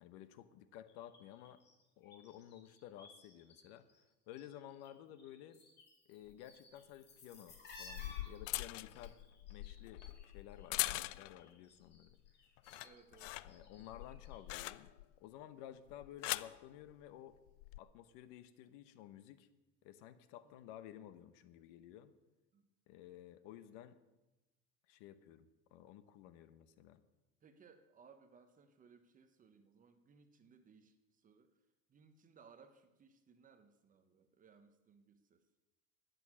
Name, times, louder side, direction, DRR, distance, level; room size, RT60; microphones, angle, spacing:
voice 1, 0.0-1.6 2.0-3.9 4.3-5.6 6.1-9.2 9.5-12.2 13.4-14.9 15.2-17.4 17.8-19.5 19.8-22.1 22.9-24.0 24.9-27.0, left 11 dB, 65° left, 13 dB, 1.0 m, -54 dB
sound 1, 0.9-3.6 3.9-4.9 5.2-11.1 11.4-14.4 14.7-14.8, left 3 dB, 25° left, 2.6 m, -59 dB
sound 2, 6.3-6.4 7.5-11.5 11.9-12.3 12.6-15.1 15.9-16.6 17.5-17.8, left 18 dB, 85° left, 0.6 m, -42 dB
voice 2, 12.8-13.7 16.2-16.3 19.2-19.3 20.4-20.7 22.5-22.7 27.4-31.5 31.9-35.4, right 5 dB, 20° right, 8 dB, 0.9 m, -64 dB
12.5 x 9.5 x 6.2 m, 1.0 s
supercardioid pair, 150°, 37 cm